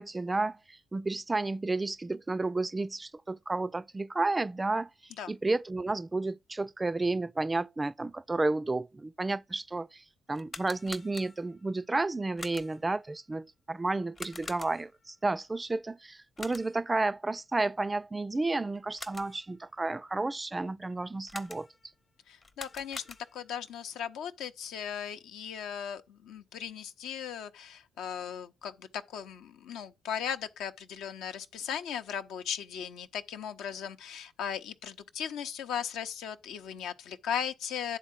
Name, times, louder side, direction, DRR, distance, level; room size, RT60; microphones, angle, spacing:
voice 1, 0.0-4.9 5.3-21.7, right 2 dB, 25° right, 0.3 m, -32 dB
sound 1, 10.3-11.6 12.4-12.9 14.1-15.0 16.4-16.9 18.7-19.5 21.3-21.9 22.4-23.5, left 3 dB, 30° left, 0.7 m, -45 dB
voice 2, 22.3-38.0, left 8 dB, 70° left, 0.6 m, -37 dB
9.8 x 3.7 x 5.8 m
hypercardioid pair, 50°, 0 cm